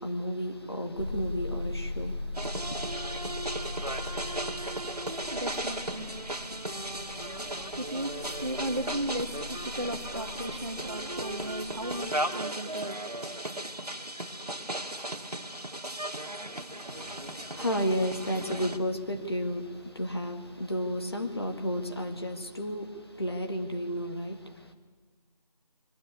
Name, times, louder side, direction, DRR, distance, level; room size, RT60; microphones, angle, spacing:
voice 1, 0.0-2.8 16.9-24.7, equal, 40° left, 1.9 m, -33 dB
sound 1, 0.9-12.1, left 2 dB, 15° left, 1.9 m, -40 dB
sound 2, 2.3-18.8, right 1 dB, 70° right, 1.8 m, -36 dB
voice 2, 5.0-14.1, right 1 dB, 45° right, 1.7 m, -37 dB
22.0 x 15.5 x 9.9 m
figure-of-eight pair, 170°, 21 cm